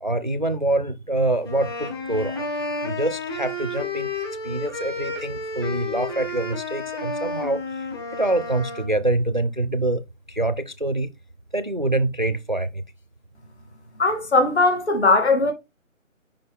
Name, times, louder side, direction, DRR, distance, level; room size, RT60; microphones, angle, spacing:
voice 1, 0.0-2.4 2.8-4.1 4.4-7.6 8.2-10.0 10.3-11.1 11.5-12.8, right 2 dB, 40° right, 0.4 m, -25 dB
sound 1, 1.4-8.9, left 2 dB, 20° left, 1.2 m, -31 dB
voice 2, 14.0-15.5, left 3 dB, 55° left, 2.4 m, -19 dB
6.8 x 5.2 x 3.5 m
figure-of-eight pair, 155°, 40 cm